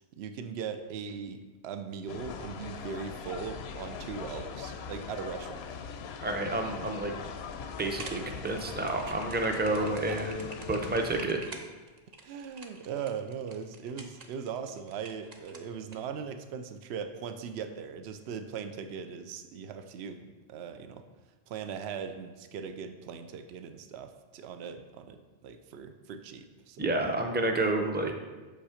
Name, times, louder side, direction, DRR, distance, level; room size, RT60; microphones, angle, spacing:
voice 1, 0.2-5.7 9.1-9.2 10.1-10.2 12.2-21.0 21.5-26.9, right 6 dB, 80° right, 8 dB, 0.8 m, -39 dB
sound 1, 2.1-11.3, left 6 dB, 75° left, 0.8 m, -41 dB
voice 2, 6.2-7.1 7.8-11.4 26.8-28.1, right 2 dB, 10° right, 4 dB, 0.5 m, -30 dB
sound 2, 7.9-16.0, right 3 dB, 45° right, 0.7 m, -47 dB
6.5 x 5.6 x 5.0 m, 1.2 s
omnidirectional pair, 1.1 m